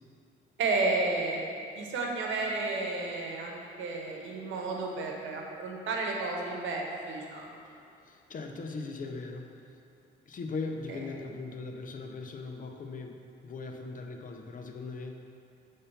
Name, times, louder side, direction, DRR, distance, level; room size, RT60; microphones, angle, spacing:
voice 1, 0.6-1.4 1.7-7.5 10.9-11.0, right 3 dB, 75° right, 0 dB, 1.1 m, -32 dB
voice 2, 8.0-9.5 10.3-15.2, left 3 dB, 45° left, 3 dB, 0.7 m, -39 dB
6.8 x 3.7 x 5.5 m, 2.6 s
cardioid pair, 90°, 20 cm